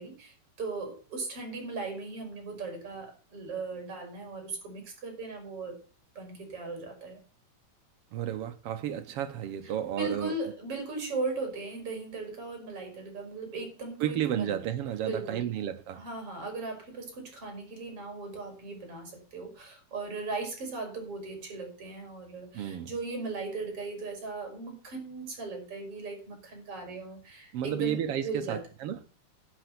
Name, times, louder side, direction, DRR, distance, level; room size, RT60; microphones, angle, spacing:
voice 1, 0.0-5.8 6.2-7.2 10.0-14.6 14.9-15.4 15.9-28.6, right 3 dB, 50° right, 5.3 m, -38 dB
voice 2, 8.1-10.4 14.0-16.0 22.5-22.9 27.5-29.0, right 10 dB, 65° right, 1.6 m, -32 dB
10.5 x 6.2 x 7.9 m
omnidirectional pair, 3.5 m